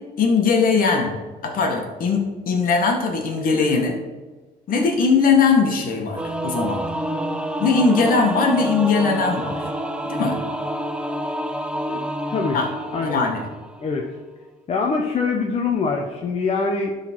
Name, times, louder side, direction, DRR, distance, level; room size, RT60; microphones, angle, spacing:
voice 1, 0.2-1.1 1.4-4.0 4.7-6.8 7.6-9.7 10.0-10.4 12.5-12.7 13.0-13.4, left 4 dB, 55° left, 2 dB, 2.0 m, -20 dB
Singing / Musical instrument, 6.2-13.9, right 1 dB, 5° right, 0.7 m, -28 dB
voice 2, 12.9-13.3 13.8-14.1 14.7-16.9, left 4 dB, 35° left, 0 dB, 1.0 m, -23 dB
12.0 x 4.1 x 4.7 m, 1.3 s
cardioid pair, 110°, 17 cm